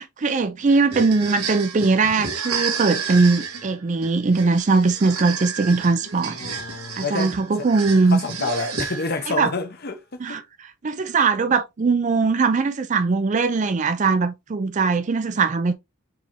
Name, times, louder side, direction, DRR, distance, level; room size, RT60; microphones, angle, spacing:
voice 1, 0.0-6.4 7.0-8.2 9.3-9.5 10.2-15.7, right 4 dB, 35° right, 0.4 m, -20 dB
sound 1, 0.7-9.3, right 5 dB, 90° right, 1.5 m, -31 dB
voice 2, 6.3-7.5 8.1-10.4, left 3 dB, 45° left, 0.8 m, -29 dB
4.9 x 3.3 x 2.9 m
head